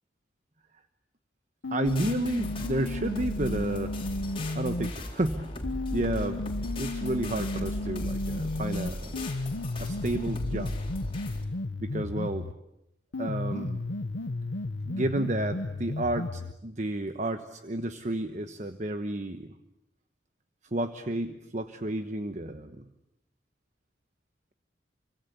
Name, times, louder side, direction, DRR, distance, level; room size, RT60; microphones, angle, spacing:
sound 1, 1.6-4.9 5.6-12.6 13.1-16.6, left 2 dB, 85° left, 0.9 m, -34 dB
voice 1, 1.7-4.0 4.5-5.5 5.9-6.5 6.8-9.2 9.8-10.7 11.8-12.5 13.2-13.8 14.8-19.5 20.7-22.9, right 1 dB, 40° right, 8 dB, 1.2 m, -31 dB
sound 2, 1.8-11.4, left 1 dB, 30° left, 4.2 m, -37 dB
28.5 x 25.0 x 8.4 m, 0.89 s
head